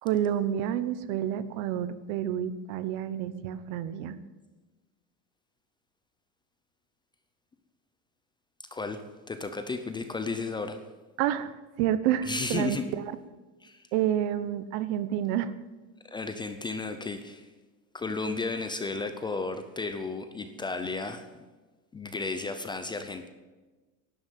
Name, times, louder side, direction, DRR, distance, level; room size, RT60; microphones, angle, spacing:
voice 1, 0.0-4.2 11.2-11.5 11.8-13.1 13.9-15.5, right 11 dB, 65° right, 14 dB, 1.2 m, -29 dB
voice 2, 8.7-10.8 12.3-12.8 13.6-13.8 16.1-17.5 17.9-21.4 21.9-23.3, left 3 dB, 10° left, 8 dB, 0.5 m, -33 dB
11.5 x 11.5 x 9.1 m, 1.2 s
cardioid pair, 175°, 42 cm